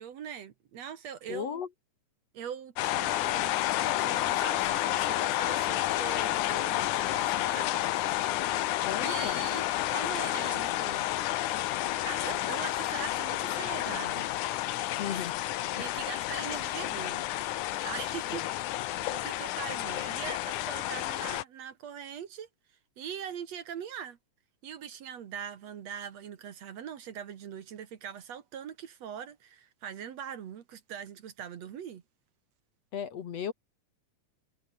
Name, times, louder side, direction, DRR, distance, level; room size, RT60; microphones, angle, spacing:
voice 1, 0.0-1.6 2.3-7.8 9.0-11.1 11.5-11.6 12.0-14.3 15.0-15.2 15.8-17.3 17.8-18.7 19.1-22.5 23.0-24.2 24.6-32.0, right 8 dB, 60° right, 2.5 m, -42 dB
voice 2, 1.3-1.7 8.8-9.4 15.0-15.5 18.3-18.4 32.9-33.5, left 8 dB, 55° left, 2.6 m, -36 dB
sound 1, 2.8-21.4, left 15 dB, 75° left, 2.3 m, -30 dB
omnidirectional pair, 3.6 m